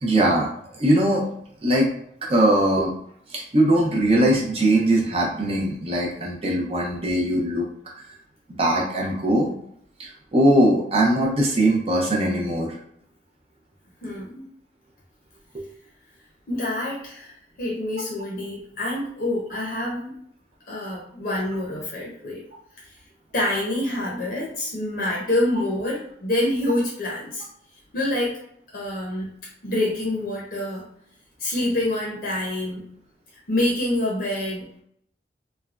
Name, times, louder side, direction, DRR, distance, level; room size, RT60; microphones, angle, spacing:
voice 1, 0.0-1.3 1.6-1.9 2.3-2.9 3.3-7.7 8.5-9.5 10.0-12.7 15.5-15.6, right 1 dB, 35° right, -2 dB, 0.6 m, -21 dB
voice 2, 14.0-14.4 16.5-20.2 20.7-22.4 23.3-27.5 27.9-28.4 28.7-29.3 29.6-30.8 31.4-32.9 33.5-34.8, left 1 dB, 55° left, -5 dB, 0.7 m, -26 dB
3.2 x 2.2 x 2.4 m, 0.68 s
head